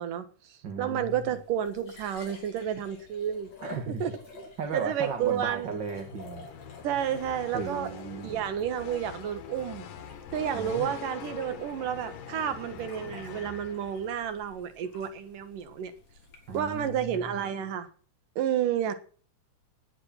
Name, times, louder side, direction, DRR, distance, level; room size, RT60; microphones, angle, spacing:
voice 1, 0.0-3.5 3.9-4.1 4.7-5.7 6.8-9.8 10.3-15.9 16.5-17.9 18.4-19.0, right 9 dB, 85° right, 3.2 m, -31 dB
voice 2, 0.6-1.2 3.6-4.0 4.3-6.5 7.5-8.5 10.5-10.9 16.5-17.3, right 4 dB, 40° right, 2.0 m, -36 dB
sound 1, 1.1-17.2, left 4 dB, 55° left, 5.3 m, -52 dB
sound 2, 5.7-14.3, left 8 dB, 90° left, 3.1 m, -44 dB
18.0 x 9.9 x 5.8 m
omnidirectional pair, 3.7 m